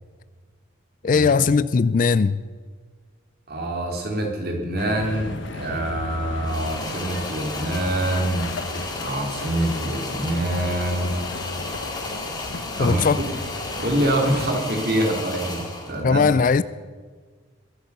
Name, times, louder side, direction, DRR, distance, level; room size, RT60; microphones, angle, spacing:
voice 1, 1.0-2.4 12.8-13.2 16.0-16.6, left 5 dB, 40° left, 0.3 m, -19 dB
voice 2, 3.5-8.5 9.0-11.2 12.8-13.3 13.8-16.4, right 1 dB, 45° right, 3.0 m, -25 dB
sound 1, 4.8-14.6, left 3 dB, 65° left, 1.0 m, -35 dB
sound 2, 6.4-16.0, left 2 dB, 20° left, 2.0 m, -34 dB
22.0 x 8.4 x 6.7 m
head